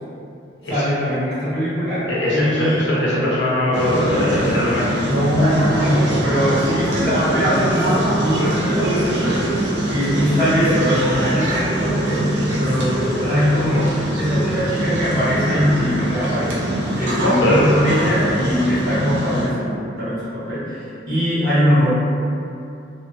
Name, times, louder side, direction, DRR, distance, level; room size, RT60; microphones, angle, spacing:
voice 1, 0.7-3.0 5.1-9.4 9.9-16.6 17.0-21.9, equal, 55° right, -13 dB, 1.1 m, -21 dB
voice 2, 2.1-4.9 17.2-17.8, left 1 dB, 75° left, -8 dB, 0.6 m, -20 dB
sound 1, 3.7-19.5, right 1 dB, 75° right, 0.6 m, -22 dB
2.5 x 2.2 x 2.4 m, 2.6 s
head